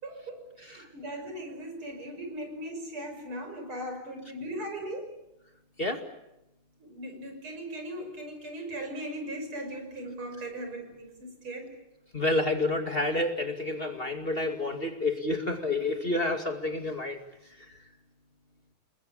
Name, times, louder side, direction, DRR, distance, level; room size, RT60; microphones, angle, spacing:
voice 1, 0.0-5.2 6.8-11.7, right 1 dB, 80° right, 5 dB, 6.7 m, -38 dB
voice 2, 12.1-17.2, left 2 dB, 25° left, 5 dB, 2.5 m, -29 dB
29.0 x 21.5 x 8.6 m, 0.89 s
omnidirectional pair, 2.3 m